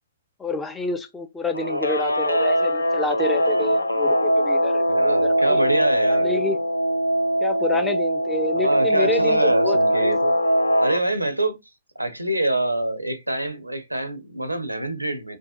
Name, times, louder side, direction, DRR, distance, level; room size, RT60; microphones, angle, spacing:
voice 1, 0.4-5.6 6.1-6.6 7.4-10.2, left 3 dB, 10° left, 0.4 m, -29 dB
Guitar, 1.5-11.0, equal, 80° left, 0.3 m, -21 dB
voice 2, 4.9-6.4 7.7-7.8 8.5-10.3 10.8-11.6 12.0-15.4, right 1 dB, 85° right, 0.5 m, -25 dB
2.7 x 2.1 x 2.3 m
figure-of-eight pair, 120°, 0 cm